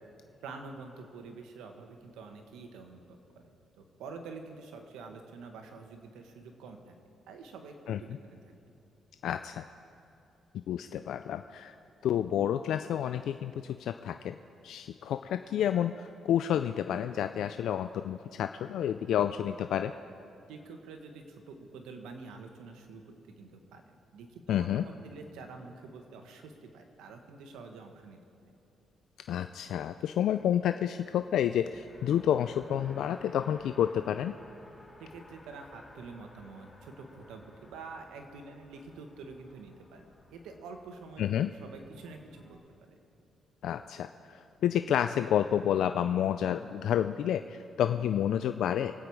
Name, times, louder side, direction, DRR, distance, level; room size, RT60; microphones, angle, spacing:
voice 1, 0.4-3.2 3.4-6.9 7.3-8.5 20.5-23.0 23.4-23.8 24.1-28.5 35.0-43.0, right 4 dB, 90° right, 4 dB, 1.5 m, -47 dB
voice 2, 9.2-9.6 10.7-11.7 12.0-14.3 14.6-19.9 24.5-24.8 29.3-34.3 41.2-41.5 43.6-48.9, left 10 dB, 75° left, 9 dB, 0.4 m, -29 dB
Race car auto racing, 31.2-42.5, left 1 dB, 10° left, 2.6 m, -56 dB
24.5 x 8.8 x 4.8 m, 2.8 s
cardioid pair, 90°, 0 cm